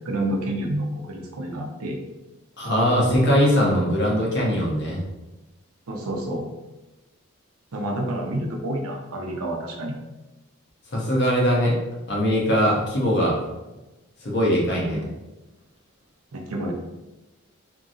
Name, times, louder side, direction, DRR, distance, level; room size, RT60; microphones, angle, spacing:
voice 1, 0.0-2.0 5.9-6.4 7.7-9.9 14.9-15.2 16.3-16.7, right 1 dB, 90° right, 0 dB, 0.6 m, -29 dB
voice 2, 2.6-5.0 10.9-11.8 12.1-13.4 14.2-15.0, equal, 50° left, -3 dB, 0.8 m, -21 dB
2.8 x 2.6 x 2.5 m, 1.1 s
head